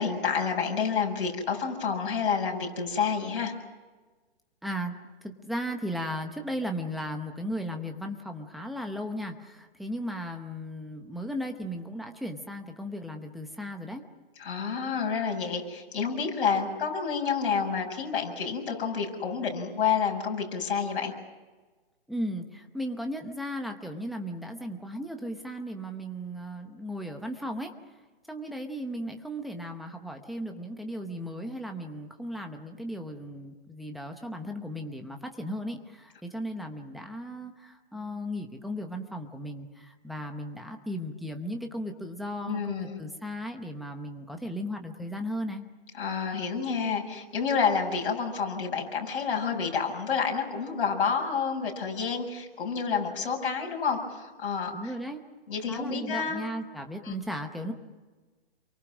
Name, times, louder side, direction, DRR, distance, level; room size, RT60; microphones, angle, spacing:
voice 1, 0.0-3.5 14.4-21.1 42.4-42.9 46.0-54.7 55.5-56.4 57.0-57.1, left 6 dB, 55° left, 1 dB, 7.1 m, -29 dB
voice 2, 4.6-4.9 5.2-14.0 22.1-27.7 28.3-45.6 54.7-55.2 55.7-57.7, equal, ahead, 4 dB, 0.8 m, -36 dB
29.5 x 23.5 x 6.2 m, 1.3 s
hypercardioid pair, 160°, 32 cm